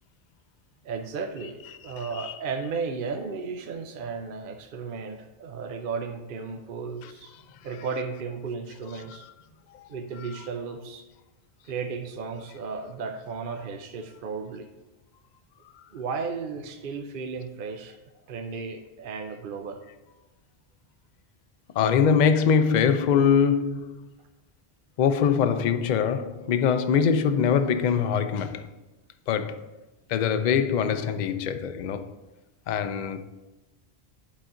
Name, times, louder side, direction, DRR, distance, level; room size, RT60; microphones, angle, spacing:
voice 1, 0.8-7.3 7.6-9.3 9.9-11.1 11.6-14.7 15.9-18.0 18.3-19.8, right 5 dB, 60° right, 0.7 m, -34 dB
voice 2, 1.4-2.4 7.0-7.1 7.7-8.0 8.8-9.2 9.7-9.8 10.1-10.5 21.8-24.1 25.0-28.7 29.3-29.6 30.1-32.1 32.7-33.2, left 7 dB, 55° left, 0.5 m, -24 dB
10.5 x 4.1 x 3.7 m
omnidirectional pair, 1.1 m